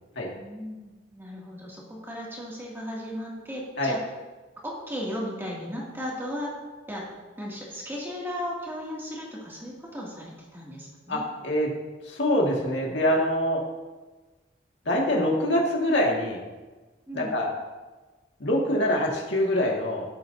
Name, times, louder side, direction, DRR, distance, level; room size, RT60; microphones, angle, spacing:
voice 1, 0.2-4.0 4.6-6.6 6.9-11.2 17.1-17.3, equal, 10° right, -5 dB, 2.3 m, -36 dB
voice 2, 12.1-13.6 14.9-16.4 17.1-17.5 18.4-20.0, left 1 dB, 70° left, -2 dB, 1.9 m, -24 dB
17.5 x 7.7 x 2.7 m, 1.2 s
head